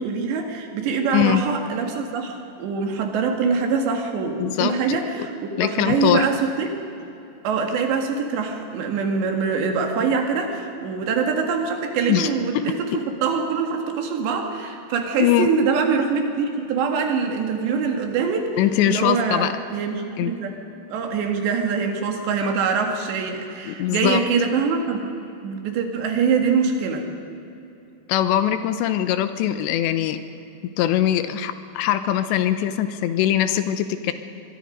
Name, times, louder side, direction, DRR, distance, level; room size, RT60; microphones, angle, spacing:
voice 1, 0.0-6.7 7.4-12.9 13.2-18.5 18.9-20.5 20.9-25.1 25.4-27.0, right 5 dB, 75° right, 3 dB, 4.1 m, -24 dB
voice 2, 1.1-1.4 4.4-5.0 5.6-6.2 12.1-12.6 15.2-15.5 18.6-19.5 20.2-20.3 23.7-24.2 28.1-30.2 30.8-34.1, left 11 dB, 80° left, 10 dB, 3.1 m, -22 dB
24.0 x 22.5 x 5.3 m, 2.9 s
omnidirectional pair, 5.2 m